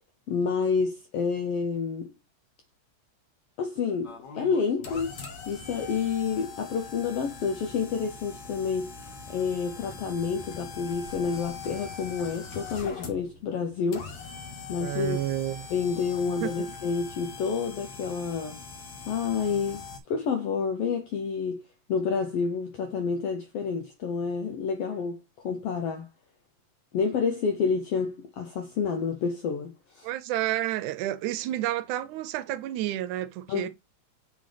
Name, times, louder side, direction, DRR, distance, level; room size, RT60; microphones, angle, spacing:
voice 1, 0.3-2.1 3.6-5.1 5.5-8.9 9.3-14.1 14.7-15.2 15.7-18.6 19.1-21.6 21.9-25.2 25.4-26.1 26.9-30.1 33.5-33.7, left 5 dB, 75° left, 1.4 m, -29 dB
sound 1, 4.0-20.0, left 4 dB, 55° left, 1.2 m, -42 dB
voice 2, 14.8-15.7 16.4-16.5 30.0-33.7, right 13 dB, 80° right, 2.0 m, -30 dB
7.5 x 3.8 x 3.3 m
omnidirectional pair, 3.5 m